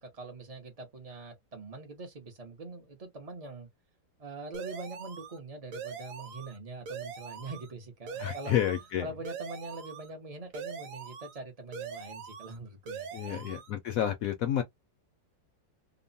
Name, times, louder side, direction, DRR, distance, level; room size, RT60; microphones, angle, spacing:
voice 1, 0.0-3.7 4.2-8.6 9.0-13.5, right 3 dB, 75° right, 0.3 m, -43 dB
sound 1, 4.5-5.4 5.7-6.6 6.9-7.7 8.1-8.9 9.2-10.1 10.5-11.4 11.7-12.6 12.9-13.7, right 6 dB, 60° right, 1.0 m, -42 dB
voice 2, 8.2-9.1 13.1-14.6, left 11 dB, 75° left, 0.8 m, -30 dB
2.9 x 2.0 x 2.6 m
omnidirectional pair, 1.9 m